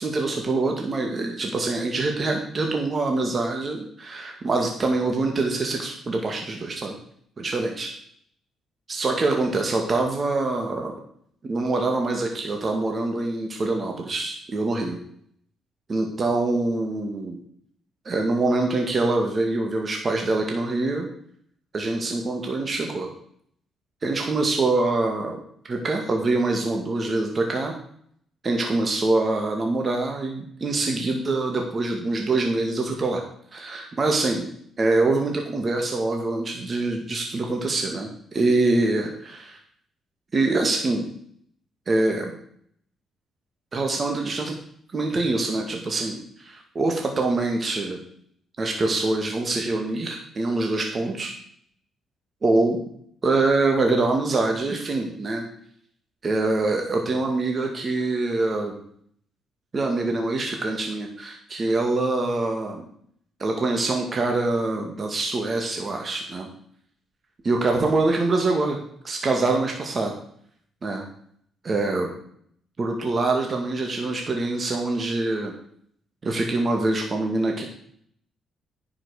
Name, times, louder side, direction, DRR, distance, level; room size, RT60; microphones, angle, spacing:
voice 1, 0.0-6.9 7.4-7.9 8.9-10.9 11.4-15.0 15.9-17.4 18.1-21.1 21.7-23.1 24.0-25.4 25.7-27.7 28.4-33.2 33.5-34.5 34.8-39.6 40.3-41.1 41.9-42.3 43.7-44.6 44.9-48.0 48.6-51.3 52.4-52.8 53.2-55.4 56.2-58.8 59.7-62.9 63.4-66.5 67.4-68.8 69.0-70.1 70.8-71.0 71.6-72.1 72.8-75.5 76.2-77.6, right 2 dB, 35° right, 2 dB, 2.0 m, -24 dB
10.0 x 6.1 x 6.5 m, 0.64 s
cardioid pair, 90°, 0 cm